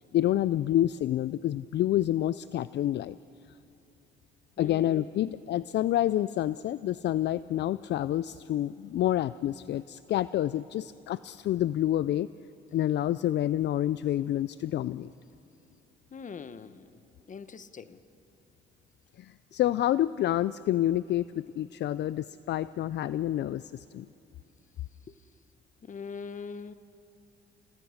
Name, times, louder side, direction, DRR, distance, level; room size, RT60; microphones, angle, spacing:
voice 1, 0.1-3.2 4.6-12.3 12.7-15.1 19.2-24.1, left 12 dB, 60° left, 17 dB, 0.4 m, -28 dB
voice 2, 4.6-5.3 16.1-16.9 17.3-18.0 25.1-25.2 25.8-26.7, left 5 dB, 40° left, 13 dB, 1.0 m, -42 dB
29.5 x 17.5 x 6.5 m, 2.7 s
cardioid pair, 90°, 20 cm